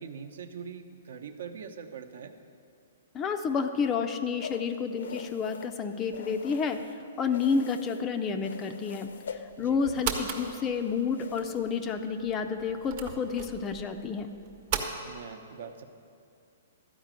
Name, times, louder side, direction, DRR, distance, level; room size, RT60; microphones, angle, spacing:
voice 1, 0.0-2.3 9.6-9.8 15.0-15.8, right 6 dB, 65° right, 7 dB, 0.8 m, -42 dB
voice 2, 3.1-6.9 7.2-14.3, left 5 dB, 15° left, 7 dB, 0.4 m, -30 dB
sound 1, 4.4-7.0 7.3-8.1 8.4-11.9, left 6 dB, 85° left, 0.6 m, -44 dB
sound 2, 9.3-14.9, right 7 dB, 35° right, 0.8 m, -38 dB
12.5 x 5.1 x 9.0 m, 2.4 s
hypercardioid pair, 170°, 0 cm